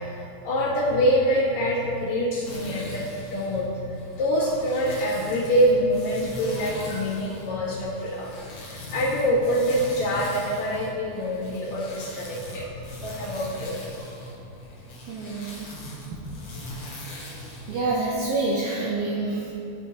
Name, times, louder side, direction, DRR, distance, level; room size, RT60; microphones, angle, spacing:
voice 1, 0.0-8.3 8.7-13.9 16.5-16.8 17.3-17.4, equal, 75° left, -5 dB, 2.5 m, -25 dB
sound 1, 2.4-18.2, equal, 55° left, 1.4 m, -41 dB
voice 2, 15.1-15.7 16.1-16.2 16.5-16.8 17.7-19.5, right 3 dB, 80° right, -3 dB, 1.4 m, -28 dB
11.5 x 4.3 x 2.8 m, 2.7 s
omnidirectional pair, 3.3 m